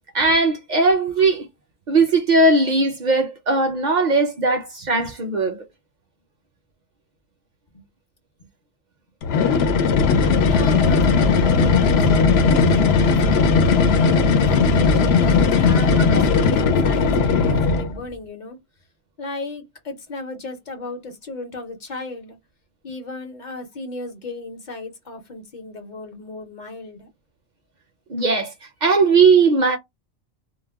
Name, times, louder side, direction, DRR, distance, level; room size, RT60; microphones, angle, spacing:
voice 1, 0.1-1.5 1.9-5.6 16.1-16.2 28.1-28.5 28.8-29.8, right 3 dB, 55° right, 0.6 m, -18 dB
sound 1, 9.2-18.0, left 4 dB, 80° left, 0.8 m, -17 dB
voice 2, 10.4-13.9 14.4-18.6 19.2-22.4 22.8-27.1, left 3 dB, 50° left, 0.8 m, -35 dB
2.2 x 2.1 x 3.3 m
omnidirectional pair, 1.0 m